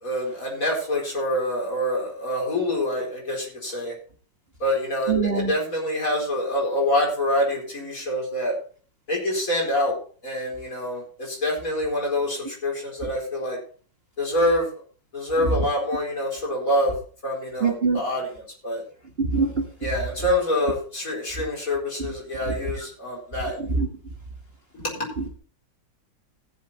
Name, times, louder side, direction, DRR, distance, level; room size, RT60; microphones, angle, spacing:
voice 1, 0.0-3.9 4.6-8.6 9.1-10.0 10.2-13.6 14.2-14.7 15.1-16.9 17.2-18.3 18.6-18.8 19.8-23.6 24.8-25.1, left 1 dB, 45° left, -3 dB, 4.8 m, -26 dB
voice 2, 5.1-5.5 15.4-15.5 17.6-18.0 19.2-19.7 22.0-22.1 22.5-22.6 23.6-23.9 25.2-25.3, right 4 dB, 35° right, 1 dB, 1.8 m, -23 dB
16.0 x 7.3 x 4.2 m, 0.42 s
omnidirectional pair, 1.9 m